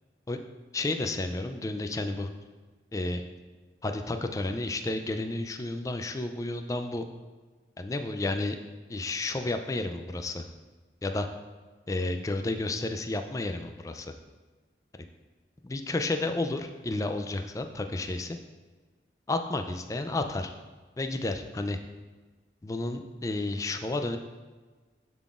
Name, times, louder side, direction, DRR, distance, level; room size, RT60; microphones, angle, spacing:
voice 1, 0.7-2.3 2.9-3.2 3.8-7.0 7.8-8.6 8.9-10.5 11.0-11.3 11.9-14.1 15.6-18.4 19.3-20.5 21.0-21.8 22.6-24.2, left 2 dB, 20° left, 6 dB, 0.3 m, -31 dB
10.5 x 3.8 x 2.4 m, 1.4 s
head